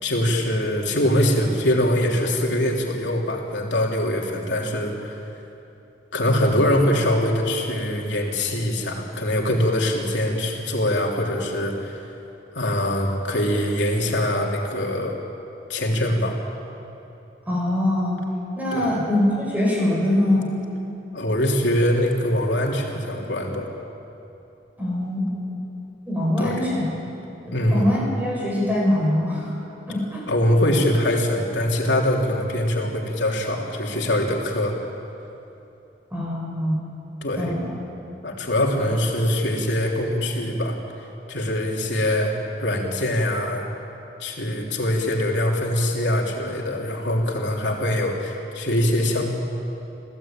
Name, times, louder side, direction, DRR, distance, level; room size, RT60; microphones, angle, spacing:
voice 1, 0.0-5.3 6.1-12.0 12.5-15.1 15.7-16.4 18.7-18.9 21.1-23.7 26.4-26.7 27.5-27.9 30.3-34.7 37.2-37.5 38.2-40.8 41.3-42.3 42.6-43.6 44.2-49.3, left 1 dB, 80° left, -1 dB, 3.2 m, -23 dB
voice 2, 17.5-18.2 18.6-20.5 24.8-25.3 26.1-26.8 27.4-29.5 29.9-30.2 36.1-36.8 37.4-37.7, left 1 dB, 10° right, -4 dB, 7.5 m, -23 dB
27.5 x 17.0 x 8.9 m, 2.9 s
head